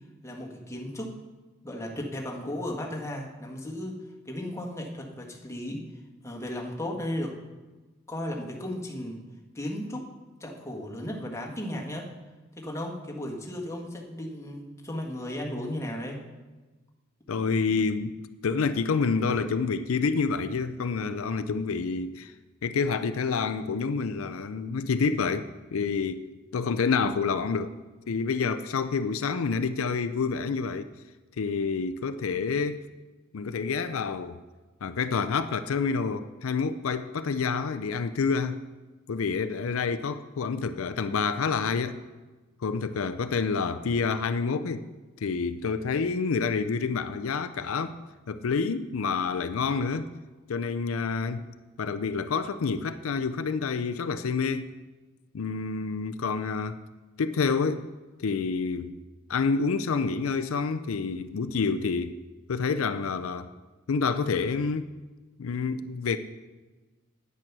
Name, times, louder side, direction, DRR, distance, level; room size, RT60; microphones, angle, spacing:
voice 1, 0.2-1.1 1.6-4.0 4.2-5.8 6.2-7.3 8.1-9.2 9.5-10.0 10.4-12.1 12.5-16.2, left 1 dB, 15° left, -1 dB, 1.6 m, -35 dB
voice 2, 17.3-18.1 18.4-22.3 22.6-26.2 26.5-27.7 28.1-30.9 31.4-32.9 33.3-34.3 34.8-38.6 39.1-42.0 42.6-44.8 45.2-48.0 48.3-50.1 50.5-51.5 51.8-54.8 55.3-56.8 57.2-57.9 58.2-59.0 59.3-62.2 62.5-63.5 63.9-64.9 65.4-66.2, left 5 dB, 80° left, 11 dB, 0.5 m, -28 dB
9.3 x 9.0 x 6.0 m, 1.2 s
head